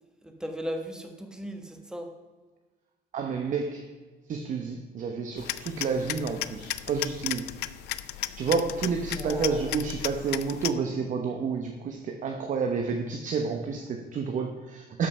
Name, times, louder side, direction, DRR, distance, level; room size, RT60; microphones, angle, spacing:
voice 1, 0.2-2.1 9.2-9.7, equal, 5° right, 5 dB, 1.3 m, -37 dB
voice 2, 3.1-3.9 4.3-7.5 8.4-15.1, right 5 dB, 50° right, 4 dB, 0.9 m, -30 dB
sound 1, 5.4-10.7, left 15 dB, 80° left, 0.5 m, -35 dB
12.5 x 5.4 x 5.5 m, 1.3 s
cardioid pair, 110°, 17 cm